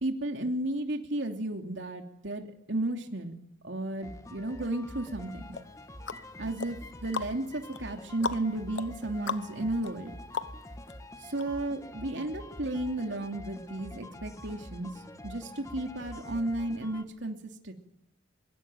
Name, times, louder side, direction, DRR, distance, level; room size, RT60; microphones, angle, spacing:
voice 1, 0.0-3.3 3.6-5.4 6.4-10.1 11.2-14.9 15.2-17.4 17.6-17.7, right 1 dB, 75° right, 3 dB, 3.0 m, -33 dB
sound 1, 4.0-17.0, left 1 dB, 15° left, 1.5 m, -46 dB
sound 2, 5.5-10.9 11.4-11.5, left 5 dB, 80° left, 1.0 m, -39 dB
24.5 x 23.0 x 9.3 m, 0.79 s
head